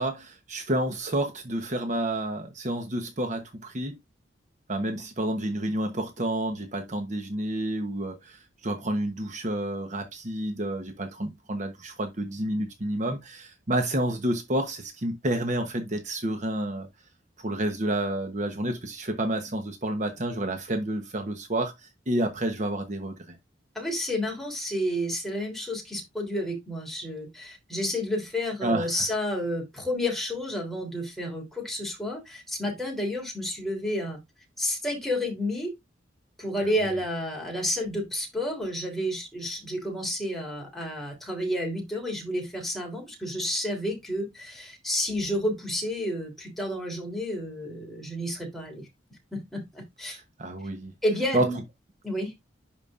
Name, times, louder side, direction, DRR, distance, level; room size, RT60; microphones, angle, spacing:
voice 1, 0.0-3.9 4.7-16.9 17.4-23.4 28.6-29.1 50.1-50.9 51.3-51.5, right 1 dB, 40° right, 1.0 m, -29 dB
voice 2, 23.7-34.2 34.6-35.7 36.4-48.9 49.3-50.2 51.0-51.6 52.0-52.3, left 1 dB, ahead, 3.3 m, -30 dB
11.0 x 5.1 x 2.5 m
head